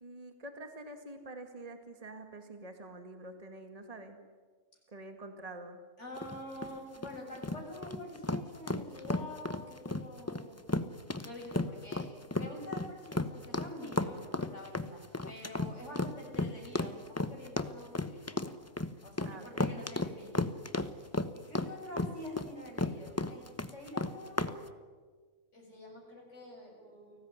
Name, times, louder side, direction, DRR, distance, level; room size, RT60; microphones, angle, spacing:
voice 1, 0.0-4.2 4.9-5.8 19.3-19.6, right 2 dB, 25° right, 6 dB, 2.2 m, -47 dB
voice 2, 6.0-10.6 11.2-12.1 12.3-18.4 19.0-20.5 21.5-24.6 25.5-27.2, left 1 dB, 55° left, -1 dB, 8.0 m, -46 dB
sound 1, 6.2-24.6, left 2 dB, 15° left, 0.8 m, -34 dB
30.0 x 19.0 x 9.8 m, 1.5 s
omnidirectional pair, 1.5 m